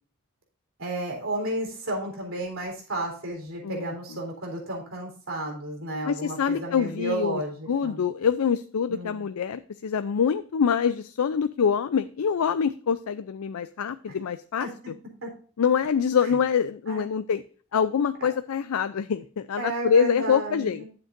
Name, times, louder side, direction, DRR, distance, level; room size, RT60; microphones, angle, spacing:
voice 1, 0.8-8.0 8.9-9.3 14.6-14.7 15.2-15.3 16.9-17.2 19.6-20.9, right 1 dB, 65° right, 1 dB, 3.7 m, -32 dB
voice 2, 6.0-7.4 7.7-14.7 15.6-17.4 17.7-20.9, left 7 dB, 85° left, 12 dB, 0.4 m, -25 dB
11.5 x 7.5 x 2.6 m, 0.42 s
head